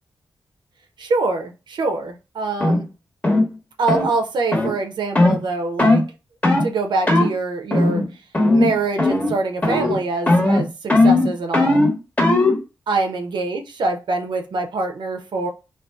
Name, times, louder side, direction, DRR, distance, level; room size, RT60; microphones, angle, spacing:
voice 1, 1.0-2.9 3.8-6.0 6.6-8.0 8.5-11.8 12.9-15.5, right 3 dB, 70° right, 0.4 m, -24 dB
sound 1, 2.6-2.8 3.2-3.5 3.9-4.1 4.5-4.7 5.2-5.4 5.8-6.1 6.4-6.7 7.1-7.3 7.7-8.1 8.3-8.7 9.0-9.4 9.6-10.0 10.3-12.6, left 2 dB, 20° left, 1.1 m, -17 dB
2.5 x 2.2 x 2.2 m
cardioid pair, 50°, 8 cm